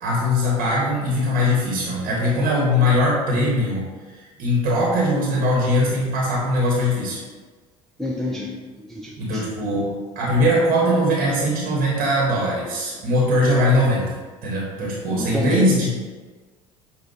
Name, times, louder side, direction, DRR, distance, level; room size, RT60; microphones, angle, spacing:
voice 1, 0.0-7.2 9.2-15.9, left 1 dB, 50° right, -5 dB, 1.3 m, -21 dB
voice 2, 8.0-8.5 8.8-9.4 15.1-15.7, left 1 dB, ahead, -4 dB, 0.7 m, -28 dB
7.0 x 2.4 x 2.8 m, 1.4 s
figure-of-eight pair, 65°, 18 cm